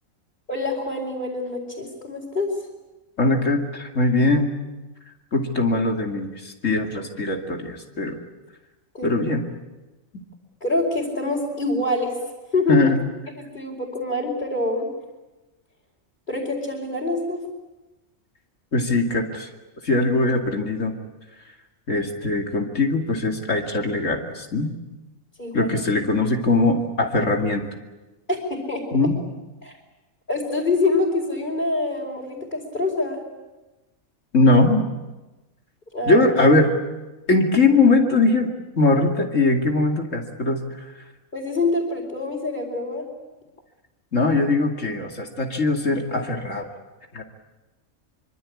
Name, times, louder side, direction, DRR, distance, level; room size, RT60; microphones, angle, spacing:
voice 1, 0.5-2.5 8.9-9.2 10.6-12.1 12.5-12.8 13.4-14.9 16.3-17.4 25.4-25.7 28.3-29.1 29.6-29.7 30.3-33.2 35.9-36.3 41.3-43.0, left 2 dB, 40° left, -4 dB, 4.8 m, -25 dB
voice 2, 3.2-4.5 5.3-8.2 9.0-9.4 12.7-13.0 18.7-19.5 19.8-20.9 21.9-24.7 25.5-27.6 28.9-29.2 34.3-34.8 36.0-36.7 37.3-38.5 38.8-40.9 44.1-46.7 47.1-47.2, left 2 dB, 65° left, 2 dB, 2.9 m, -21 dB
25.5 x 25.0 x 8.6 m, 1.1 s
omnidirectional pair, 1.4 m